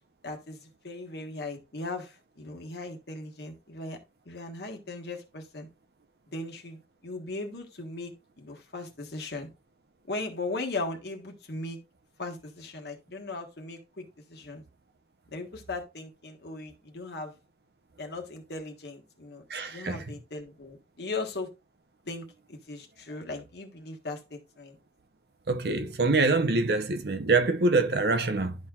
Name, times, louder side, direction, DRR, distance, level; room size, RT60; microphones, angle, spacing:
voice 1, 0.2-4.0 4.2-5.7 6.3-9.5 10.1-11.8 12.2-14.6 15.3-17.3 18.0-21.5 22.0-24.8, left 2 dB, 65° left, 1.4 m, -38 dB
voice 2, 19.5-20.0 25.5-28.6, right 3 dB, 60° right, 0.7 m, -25 dB
11.5 x 4.2 x 2.3 m
head